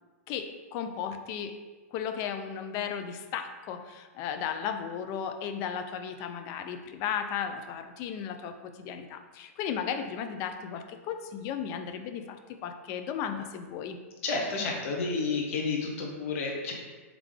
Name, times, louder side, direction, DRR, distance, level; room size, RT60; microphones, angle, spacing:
voice 1, 0.3-1.5 1.9-14.0, left 8 dB, 40° left, 8 dB, 0.4 m, -35 dB
voice 2, 14.2-16.7, left 4 dB, 60° left, 0 dB, 0.8 m, -30 dB
3.6 x 3.5 x 3.2 m, 1.3 s
hypercardioid pair, 130°, 8 cm